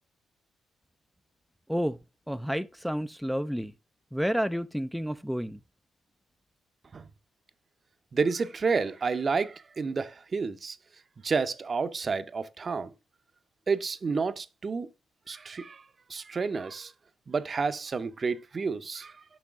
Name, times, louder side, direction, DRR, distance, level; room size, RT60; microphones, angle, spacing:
voice 1, 2.3-3.7 4.1-5.6, equal, ahead, 0.4 m, -30 dB
voice 2, 8.1-10.8 11.2-12.9 13.7-14.9 15.3-15.8 16.1-16.9 17.3-19.2, right 4 dB, 40° right, 0.7 m, -30 dB
6.2 x 5.7 x 3.6 m
cardioid pair, 80°, 0 cm